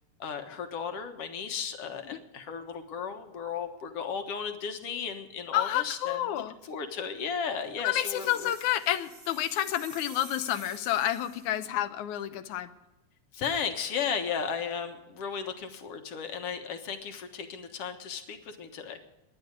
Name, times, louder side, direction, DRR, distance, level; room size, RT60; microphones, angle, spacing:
voice 1, 0.2-8.5 13.3-19.0, left 6 dB, 60° left, 6 dB, 2.2 m, -35 dB
voice 2, 5.5-6.6 7.8-12.7, left 13 dB, 85° left, 12 dB, 2.3 m, -29 dB
sound 1, 7.9-11.6, right 2 dB, 25° right, 1.4 m, -49 dB
19.5 x 11.0 x 5.3 m, 1.0 s
omnidirectional pair, 3.3 m